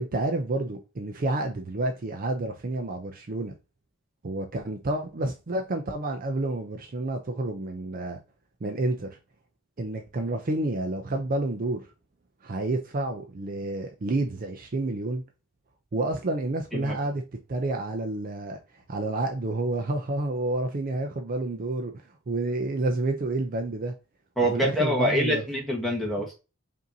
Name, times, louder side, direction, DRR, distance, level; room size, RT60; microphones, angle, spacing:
voice 1, 0.0-3.5 4.2-8.2 8.6-9.2 9.8-11.8 12.4-15.2 15.9-17.2 17.5-18.6 18.9-21.9 22.3-23.9 24.5-25.4, right 2 dB, 45° right, 0.5 m, -29 dB
voice 2, 24.4-26.4, equal, ahead, 1.2 m, -26 dB
5.1 x 2.7 x 2.7 m
head